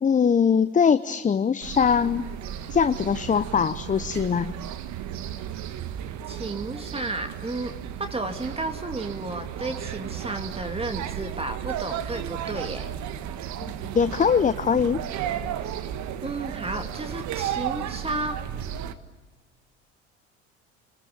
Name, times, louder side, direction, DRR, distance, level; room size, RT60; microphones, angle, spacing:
voice 1, 0.0-2.2 2.7-4.5 13.6-15.0, left 6 dB, 20° left, 12 dB, 0.8 m, -22 dB
sound 1, 1.6-18.9, right 10 dB, 55° right, 1.6 m, -34 dB
voice 2, 6.3-12.9 16.2-18.4, right 2 dB, 15° right, 6 dB, 2.6 m, -32 dB
29.0 x 21.0 x 8.7 m, 1.3 s
hypercardioid pair, 65°, 35 cm